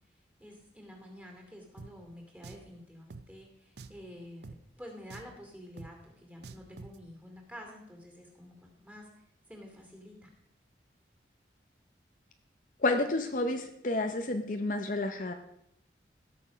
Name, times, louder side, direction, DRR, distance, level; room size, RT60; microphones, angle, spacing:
voice 1, 0.4-9.1 9.5-10.3, equal, 10° right, 1 dB, 2.5 m, -49 dB
Drum, 1.8-1.9 2.4-2.7 3.1-3.2 3.8-4.0 4.4-4.6 5.1-5.4 5.8-5.9 6.4-7.0, right 4 dB, 65° right, 0.6 m, -47 dB
voice 2, 12.8-15.3, left 2 dB, 45° left, 6 dB, 0.7 m, -30 dB
16.5 x 7.0 x 5.1 m, 0.77 s
head